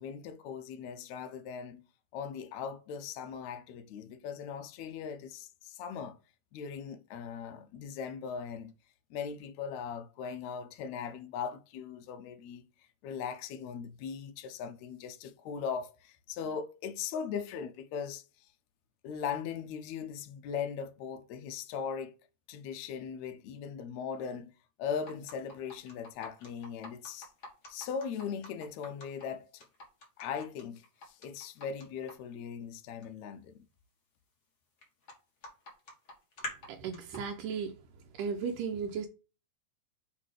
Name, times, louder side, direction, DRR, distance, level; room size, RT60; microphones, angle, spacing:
voice 1, 0.0-1.8 2.1-6.2 6.5-8.7 9.1-12.7 13.0-18.5 19.0-22.1 22.5-24.5 24.8-27.3 27.7-29.6 30.2-33.6, left 7 dB, 80° left, 1.6 m, -39 dB
sound 1, 25.0-29.2 29.6-32.1 33.0-33.1 34.8-35.2 35.4-37.2, left 1 dB, 40° left, 1.6 m, -46 dB
voice 2, 36.7-37.8 38.1-39.1, right 6 dB, 80° right, 2.2 m, -35 dB
7.6 x 3.7 x 3.4 m
omnidirectional pair, 3.9 m